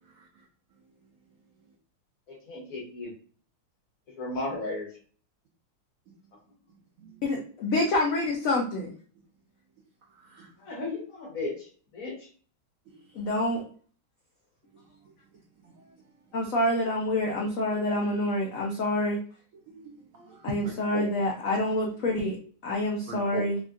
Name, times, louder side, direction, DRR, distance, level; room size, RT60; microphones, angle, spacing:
voice 1, 0.1-0.5 7.0-7.2 10.1-10.8 12.9-13.3 14.7-14.9 15.6-16.0 19.7-21.1 21.9-22.0 23.1-23.4, right 6 dB, 85° right, -2 dB, 0.7 m, -41 dB
voice 2, 2.3-3.1 4.1-4.9 10.6-12.3, left 2 dB, 50° left, -2 dB, 1.3 m, -35 dB
voice 3, 7.2-8.9 13.1-13.6 16.3-19.2 20.4-22.4 22.6-23.6, left 1 dB, 75° left, -2 dB, 0.7 m, -27 dB
3.6 x 2.1 x 2.4 m, 0.43 s
omnidirectional pair, 2.1 m